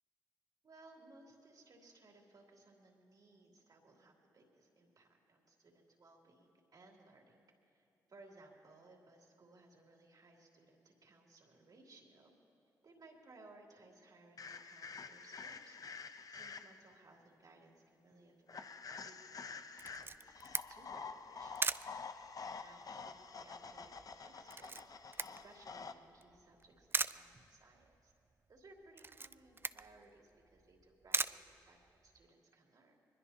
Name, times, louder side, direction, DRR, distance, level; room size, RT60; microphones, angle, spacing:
voice 1, 0.6-7.4 7.6-12.3 12.8-21.6 22.6-28.1 28.5-33.0, right 2 dB, 55° right, 0 dB, 3.0 m, -62 dB
sound 1, 14.4-16.9 18.5-25.9, left 5 dB, 50° left, 0.8 m, -48 dB
Camera, 19.8-32.3, right 4 dB, 30° right, 0.4 m, -42 dB
22.5 x 21.0 x 2.9 m, 2.6 s
supercardioid pair, 50°, 8 cm